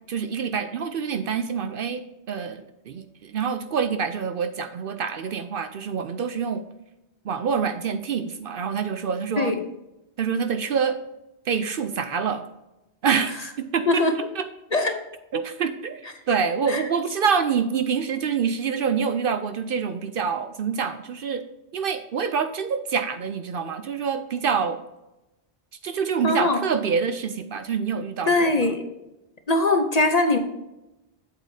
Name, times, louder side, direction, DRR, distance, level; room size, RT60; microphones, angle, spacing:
voice 1, 0.1-6.6 7.2-9.5 10.2-11.0 11.5-12.5 13.0-13.3 13.6-14.0 14.4-14.5 15.3-21.4 21.7-24.8 25.8-28.5, right 6 dB, 60° right, 9 dB, 0.7 m, -26 dB
voice 2, 13.9-14.2 14.7-15.0 16.7-16.9 26.2-26.6 28.3-28.8 29.5-30.4, left 2 dB, 45° left, 6 dB, 0.7 m, -21 dB
8.1 x 8.0 x 2.7 m, 0.97 s
omnidirectional pair, 1.1 m